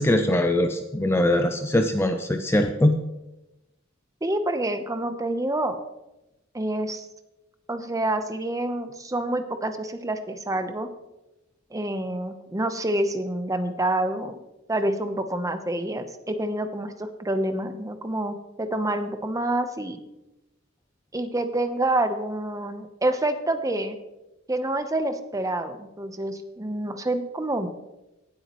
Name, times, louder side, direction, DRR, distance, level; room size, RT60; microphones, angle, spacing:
voice 1, 0.0-3.0, left 1 dB, 10° left, 6 dB, 0.5 m, -22 dB
voice 2, 4.2-5.8 6.5-7.1 7.7-10.9 11.7-14.4 14.7-20.0 21.1-24.0 24.5-27.7, right 1 dB, 15° right, 8 dB, 0.8 m, -27 dB
18.5 x 8.2 x 3.1 m, 0.96 s
head